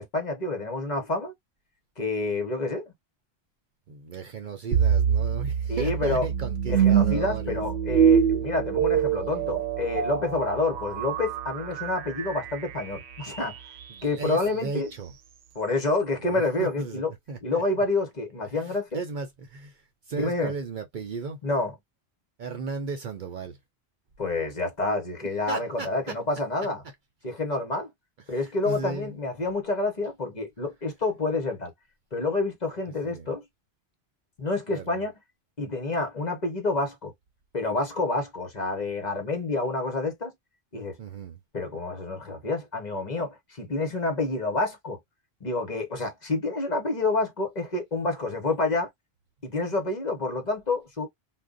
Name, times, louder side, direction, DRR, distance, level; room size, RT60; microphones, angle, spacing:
voice 1, 0.0-1.3 2.0-2.8 5.7-6.2 6.7-13.6 14.0-14.9 15.5-17.1 17.4-19.0 20.2-20.5 21.4-21.7 24.2-26.8 27.2-27.9 28.3-31.7 32.1-33.4 34.4-35.1 35.6-37.1 37.5-40.3 40.7-40.9 41.5-45.0 45.4-48.9 49.4-51.1, left 2 dB, 45° left, 1.1 m, -28 dB
voice 2, 3.9-7.6 13.9-15.1 16.2-17.6 18.5-21.4 22.4-23.6 25.5-26.2 28.3-29.2 33.0-33.3 34.7-35.0 41.0-41.4, right 4 dB, 55° right, 0.7 m, -36 dB
sound 1, 4.7-13.8, right 8 dB, 80° right, 0.8 m, -25 dB
2.5 x 2.1 x 3.6 m
omnidirectional pair, 1.1 m